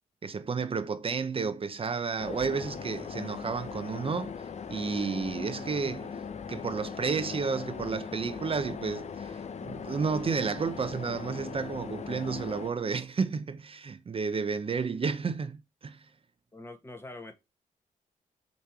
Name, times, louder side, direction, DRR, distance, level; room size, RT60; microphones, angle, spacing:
voice 1, 0.2-4.3 4.7-6.2 6.5-16.0, right 5 dB, 40° right, 0.8 m, -32 dB
sound 1, 2.2-12.7, left 6 dB, 55° left, 0.8 m, -39 dB
voice 2, 16.5-17.3, left 2 dB, 15° left, 1.6 m, -44 dB
6.6 x 3.3 x 5.9 m
cardioid pair, 80°, 14 cm